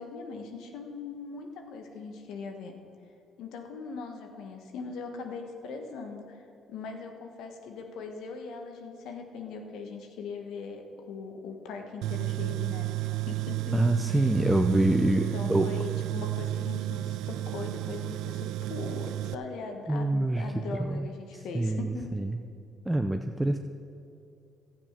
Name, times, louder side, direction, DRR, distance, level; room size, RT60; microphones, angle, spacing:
voice 1, 0.0-2.7 3.4-6.4 6.7-12.9 13.3-14.3 15.0-22.1, left 4 dB, 75° left, 4 dB, 1.4 m, -40 dB
Tools, 12.0-19.3, right 15 dB, 75° right, 0.3 m, -32 dB
voice 2, 13.7-15.7 19.9-21.1 21.3-22.4 22.9-23.6, right 1 dB, 10° right, 6 dB, 0.6 m, -26 dB
12.0 x 8.9 x 5.8 m, 2.7 s
supercardioid pair, 60°, 0 cm